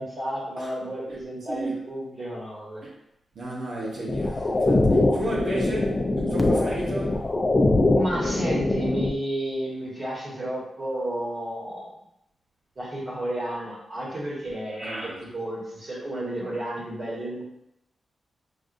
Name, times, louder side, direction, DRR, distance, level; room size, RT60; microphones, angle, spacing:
voice 1, 0.0-2.8 7.9-11.9 12.8-17.4, right 1 dB, 35° right, -6 dB, 1.5 m, -31 dB
voice 2, 1.5-1.8 2.8-2.9 3.3-7.2 14.8-15.2, right 2 dB, 85° right, -5 dB, 1.0 m, -33 dB
sound 1, 4.1-9.1, left 2 dB, 25° left, 0.4 m, -23 dB
6.1 x 2.5 x 2.6 m, 0.80 s
wide cardioid pair, 180°, 0 cm